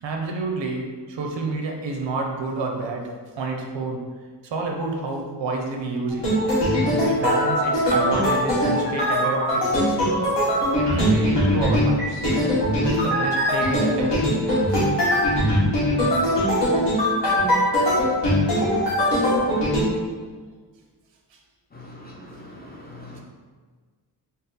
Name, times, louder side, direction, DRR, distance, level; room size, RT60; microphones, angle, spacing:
voice 1, 0.0-4.0 4.4-6.3 6.9-10.0 10.7-12.3 12.8-14.4 14.7-14.8, right 3 dB, 85° right, 2 dB, 0.7 m, -29 dB
sound 1, 6.1-19.8, equal, 70° left, 1.5 m, -21 dB
voice 2, 21.7-23.2, left 1 dB, 25° left, -2 dB, 0.4 m, -42 dB
4.0 x 2.1 x 3.9 m, 1.5 s
wide cardioid pair, 160°, 43 cm